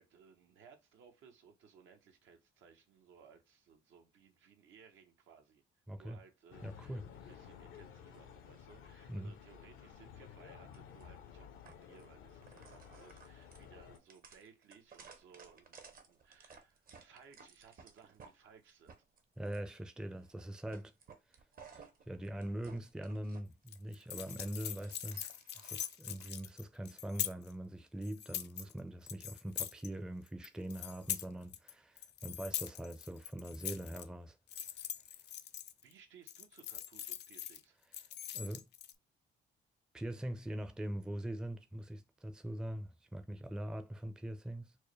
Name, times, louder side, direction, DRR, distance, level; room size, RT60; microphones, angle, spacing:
voice 1, 0.0-5.6 5.9-19.0 35.8-37.8, right 6 dB, 75° right, 0.9 m, -61 dB
voice 2, 5.9-6.2 6.6-7.1 9.1-9.3 19.4-20.9 21.7-25.2 25.6-34.3 38.3-38.7 39.9-44.7, right 1 dB, 5° right, 0.4 m, -42 dB
sound 1, 6.5-14.0, left 8 dB, 85° left, 0.7 m, -54 dB
sound 2, 10.7-11.0 11.6-12.0 12.4-18.3 18.7-19.7 20.2-20.4 20.7-23.4 23.7-26.3, right 5 dB, 45° right, 0.8 m, -58 dB
sound 3, 23.7-27.5 28.0-28.7 29.1-29.9 30.3-31.7 32.0-34.0 34.5-35.9 36.3-37.6 37.9-38.9, left 10 dB, 60° left, 0.4 m, -42 dB
4.6 x 2.1 x 3.1 m
cardioid pair, 90°, 20 cm